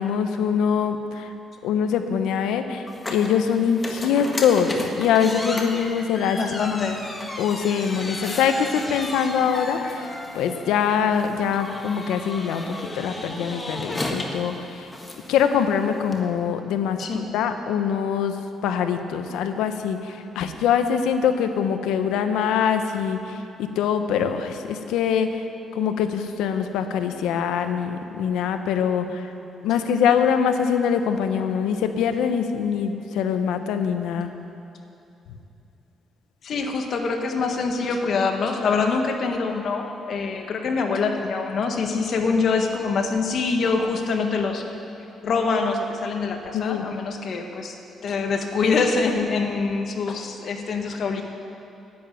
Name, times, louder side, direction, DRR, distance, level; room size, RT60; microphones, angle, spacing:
voice 1, 0.0-1.3 1.6-4.7 5.0-6.6 7.4-14.9 15.3-25.4 25.7-29.3 29.6-34.3 46.5-46.8, left 7 dB, 90° left, 8 dB, 0.9 m, -23 dB
sound 1, 2.9-16.2, left 2 dB, 25° left, 1.6 m, -34 dB
voice 2, 6.3-7.0 17.0-17.3 36.4-44.6 45.2-47.8 48.0-51.2, left 4 dB, 60° left, 4 dB, 1.5 m, -24 dB
10.5 x 8.9 x 9.1 m, 2.8 s
cardioid pair, 90°, 0 cm